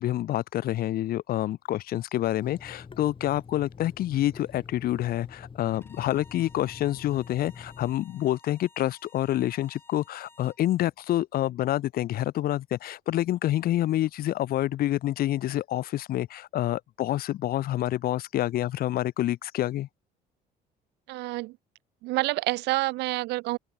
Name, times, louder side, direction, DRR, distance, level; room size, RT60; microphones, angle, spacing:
voice 1, 0.0-19.9, left 13 dB, 60° left, 0.9 m, -27 dB
Water tap faucet / Sink (filling or washing), 2.4-8.0, left 5 dB, 30° left, 3.2 m, -46 dB
Bowed string instrument, 5.7-10.6, left 2 dB, 15° left, 4.1 m, -56 dB
voice 2, 21.1-21.6 22.0-23.6, right 20 dB, 85° right, 0.6 m, -28 dB
open air
cardioid pair, 110°, 17 cm